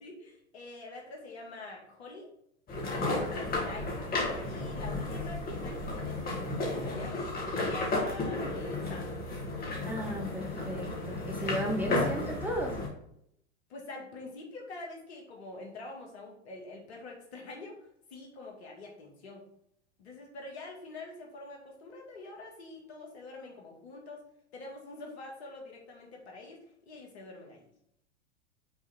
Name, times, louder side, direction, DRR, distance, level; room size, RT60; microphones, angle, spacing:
voice 1, 0.0-2.3 2.8-4.1 4.4-7.3 7.6-9.1 13.7-19.5 20.0-24.2 24.5-27.7, left 2 dB, 65° left, 0 dB, 2.1 m, -46 dB
sound 1, 2.7-12.9, left 2 dB, 25° left, 2.1 m, -33 dB
voice 2, 9.9-12.7, equal, 5° right, 0 dB, 1.1 m, -34 dB
6.1 x 3.6 x 4.4 m, 0.74 s
hypercardioid pair, 100°, 35 cm